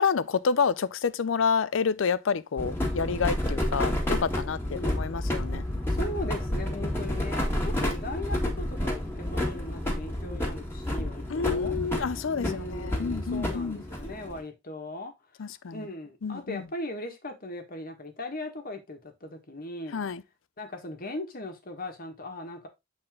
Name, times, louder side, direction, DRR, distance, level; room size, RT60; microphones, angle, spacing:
voice 1, 0.0-5.6 7.0-7.1 11.3-12.5 12.8-13.8 15.4-15.8 16.2-16.6 19.9-20.2, left 5 dB, 80° left, 0.5 m, -28 dB
sound 1, 2.6-14.4, left 1 dB, 10° left, 1.8 m, -30 dB
voice 2, 4.7-5.0 5.9-11.8 12.3-15.1 15.7-20.0 20.6-22.7, left 1 dB, 50° left, 1.6 m, -38 dB
7.7 x 4.2 x 3.7 m
head